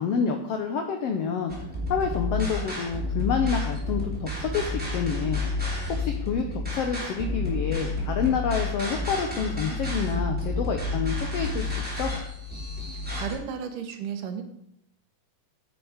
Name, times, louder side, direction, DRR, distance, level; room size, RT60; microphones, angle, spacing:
voice 1, 0.0-1.5 1.9-4.7 4.9-5.4 5.9-12.1, left 6 dB, 85° left, 5 dB, 1.3 m, -28 dB
sound 1, 1.5-13.3, left 3 dB, 5° right, 2.9 m, -30 dB
voice 2, 12.8-14.4, right 7 dB, 75° right, 6 dB, 2.6 m, -34 dB
9.8 x 7.8 x 5.0 m, 0.73 s
omnidirectional pair, 4.0 m